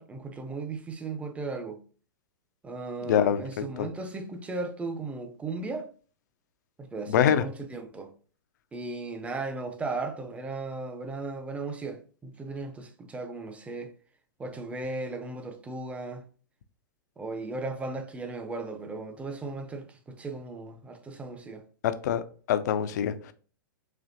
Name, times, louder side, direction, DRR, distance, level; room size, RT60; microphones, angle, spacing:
voice 1, 0.0-1.8 2.6-5.9 6.8-8.1 8.7-13.9 14.4-16.3 17.2-21.6, right 3 dB, 10° right, 0.5 m, -36 dB
voice 2, 3.0-3.9 7.1-7.4 21.8-22.2 22.5-23.3, left 9 dB, 55° left, 0.4 m, -25 dB
4.4 x 2.7 x 2.5 m
figure-of-eight pair, 105°, 11 cm